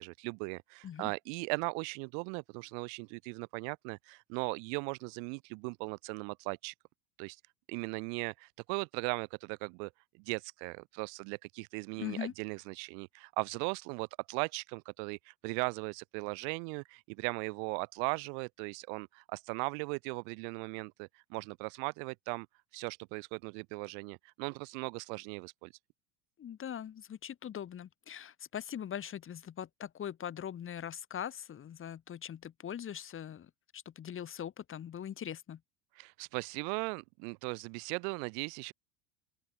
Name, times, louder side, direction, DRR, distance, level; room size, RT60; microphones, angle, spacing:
voice 1, 0.0-6.7 7.2-7.4 7.7-22.5 22.7-25.7 36.0-38.7, right 40 dB or more, 60° right, 1.2 m, -38 dB
voice 2, 12.0-12.3 26.4-35.6, left 9 dB, 30° left, 1.7 m, -41 dB
open air
supercardioid pair, 115°, 44 cm